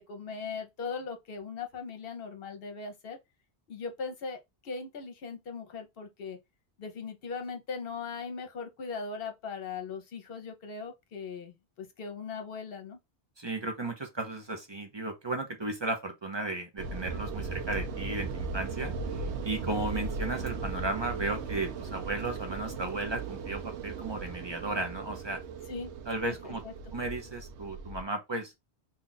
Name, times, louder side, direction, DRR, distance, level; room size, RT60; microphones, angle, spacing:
voice 1, 0.1-3.2 3.7-6.4 6.8-13.0 25.7-25.9 26.2-26.7, left 5 dB, 60° left, 1.0 m, -39 dB
voice 2, 13.4-25.4 26.1-26.6 26.9-28.6, right 2 dB, 35° right, 0.5 m, -35 dB
sound 1, 16.8-28.0, right 4 dB, 85° right, 0.9 m, -37 dB
2.7 x 2.4 x 3.8 m
omnidirectional pair, 1.1 m